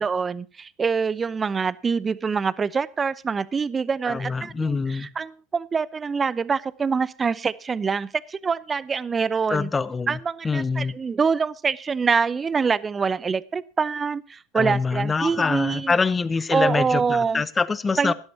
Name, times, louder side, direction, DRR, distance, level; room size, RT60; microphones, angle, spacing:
voice 1, 0.0-9.7 10.1-15.9 16.5-17.4 18.0-18.1, right 5 dB, 25° right, 19 dB, 0.7 m, -25 dB
voice 2, 4.0-5.1 9.5-10.2 10.4-10.9 14.5-18.1, left 4 dB, 20° left, 17 dB, 0.9 m, -25 dB
17.5 x 12.0 x 2.8 m, 0.39 s
hypercardioid pair, 80°, 0 cm